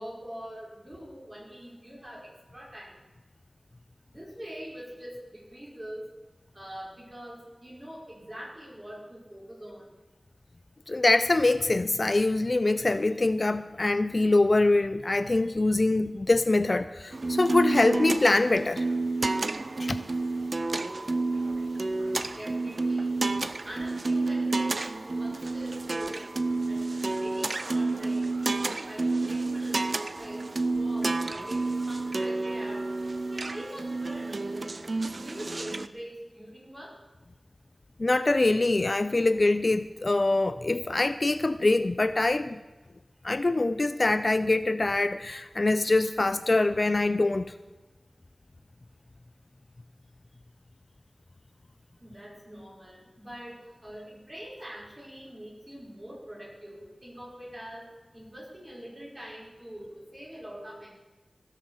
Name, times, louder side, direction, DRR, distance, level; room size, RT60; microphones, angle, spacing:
voice 1, 0.0-2.9 4.1-6.1 6.5-9.8 22.2-23.1 23.6-26.2 26.7-26.8 27.2-30.4 30.7-32.8 33.3-34.8 35.2-36.9 52.0-57.9 58.1-60.9, equal, 25° right, 5.2 m, -43 dB
voice 2, 10.9-18.9 19.8-20.0 38.0-42.6 43.2-47.5, left 2 dB, 45° left, 0.4 m, -24 dB
sound 1, 17.1-35.9, right 3 dB, 55° right, 0.5 m, -30 dB
16.5 x 6.6 x 6.3 m
wide cardioid pair, 75°, 0 cm